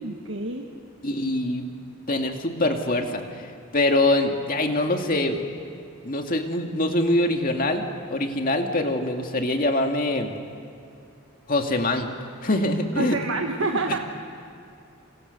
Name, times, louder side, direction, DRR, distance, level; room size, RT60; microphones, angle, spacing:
voice 1, 0.0-0.7 12.9-14.0, right 3 dB, 65° right, 2 dB, 1.5 m, -27 dB
voice 2, 1.0-1.7 2.1-5.5 6.0-10.3 11.5-12.1 12.4-13.2, left 1 dB, 40° left, 3 dB, 2.3 m, -24 dB
29.0 x 27.5 x 6.8 m, 2.5 s
head